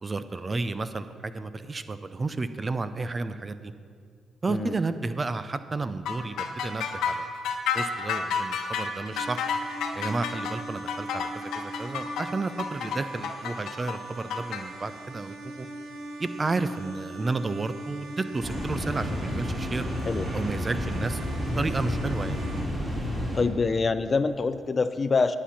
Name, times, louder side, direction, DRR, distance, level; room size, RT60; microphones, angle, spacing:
voice 1, 0.0-3.7 4.4-7.2 7.7-9.4 9.9-15.7 16.2-19.9 20.3-21.2 21.6-22.4, right 3 dB, 30° right, 12 dB, 0.5 m, -32 dB
sound 1, 6.1-14.6, left 6 dB, 80° left, 1.1 m, -30 dB
sound 2, 9.1-22.6, right 1 dB, 90° right, 2.2 m, -41 dB
sound 3, 18.4-23.4, equal, 15° right, 3.0 m, -30 dB
voice 2, 23.3-25.4, left 4 dB, 35° left, 12 dB, 0.5 m, -25 dB
9.9 x 8.4 x 5.8 m, 2.1 s
cardioid pair, 90°, 0 cm